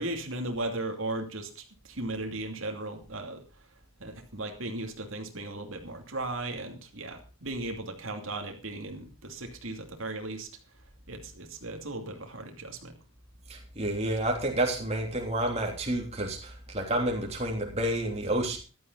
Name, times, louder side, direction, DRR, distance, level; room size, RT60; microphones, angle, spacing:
voice 1, 0.0-3.4 4.0-10.5 11.1-12.9, right 2 dB, 70° right, 4 dB, 2.7 m, -36 dB
voice 2, 13.5-18.6, right 1 dB, 30° right, 1 dB, 3.3 m, -29 dB
15.0 x 12.5 x 4.0 m, 0.32 s
head